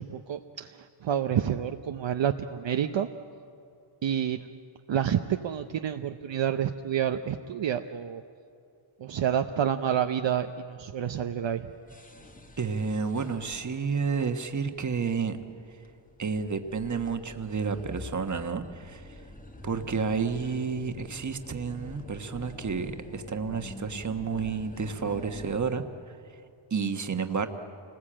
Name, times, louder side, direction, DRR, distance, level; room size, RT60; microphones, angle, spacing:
voice 1, 0.0-3.1 4.0-4.5 4.9-8.2 9.0-11.7, right 9 dB, 65° right, 6 dB, 0.8 m, -29 dB
sound 1, 11.5-25.7, left 1 dB, 15° left, 1.3 m, -46 dB
voice 2, 12.6-15.4 16.2-19.0 19.6-25.8 26.7-27.5, right 5 dB, 35° right, 7 dB, 1.3 m, -30 dB
28.5 x 20.0 x 8.8 m, 2.5 s
wide cardioid pair, 160°, 49 cm